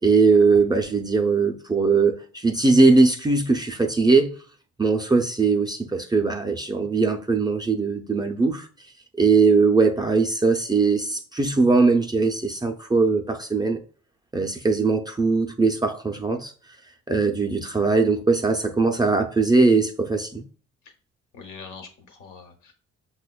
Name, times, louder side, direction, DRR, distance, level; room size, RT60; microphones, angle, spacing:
voice 1, 0.0-4.3 4.8-8.7 9.2-13.8 14.3-16.5 17.1-20.4, right 4 dB, 15° right, 0.3 m, -20 dB
voice 2, 21.3-22.7, left 5 dB, 80° left, 1.0 m, -43 dB
5.8 x 2.1 x 2.2 m
cardioid pair, 90°, 30 cm